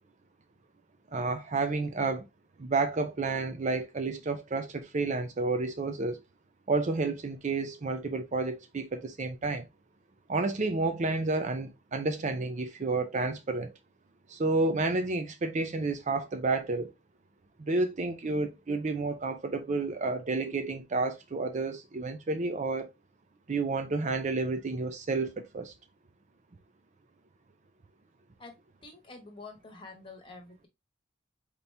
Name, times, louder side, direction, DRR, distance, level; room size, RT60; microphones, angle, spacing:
voice 1, 1.1-2.2 2.6-6.2 6.7-9.7 10.3-13.7 14.3-16.9 17.6-22.9 23.5-25.7, right 3 dB, 40° right, 0.5 m, -30 dB
voice 2, 28.8-30.7, left 3 dB, 25° left, 1.2 m, -47 dB
4.1 x 3.0 x 3.2 m
head